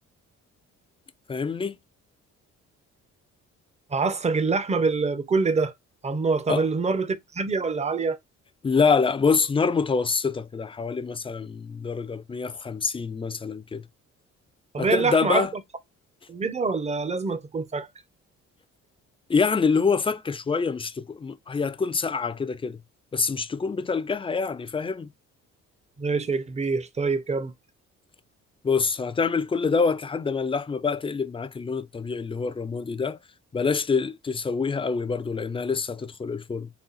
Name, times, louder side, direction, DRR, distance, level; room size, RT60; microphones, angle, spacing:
voice 1, 1.3-1.7 6.5-6.6 8.6-13.8 14.8-15.5 19.3-22.8 23.1-25.1 28.6-33.2 33.5-36.7, left 5 dB, 20° left, 0.5 m, -26 dB
voice 2, 3.9-5.7 6.0-8.2 14.7-15.5 16.3-17.9 26.0-27.5, right 4 dB, 20° right, 0.6 m, -25 dB
4.1 x 2.3 x 3.9 m
cardioid pair, 90°, 30 cm